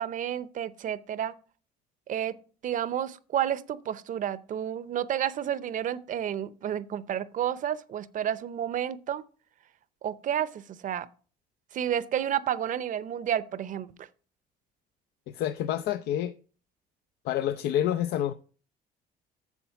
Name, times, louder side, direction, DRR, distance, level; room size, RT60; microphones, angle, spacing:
voice 1, 0.0-1.3 2.1-2.3 2.6-9.2 10.0-11.1 11.7-14.1, right 10 dB, 50° right, 0.7 m, -31 dB
voice 2, 15.3-16.3 17.2-18.3, left 11 dB, 75° left, 0.5 m, -28 dB
7.2 x 7.2 x 5.8 m
cardioid pair, 110°, 17 cm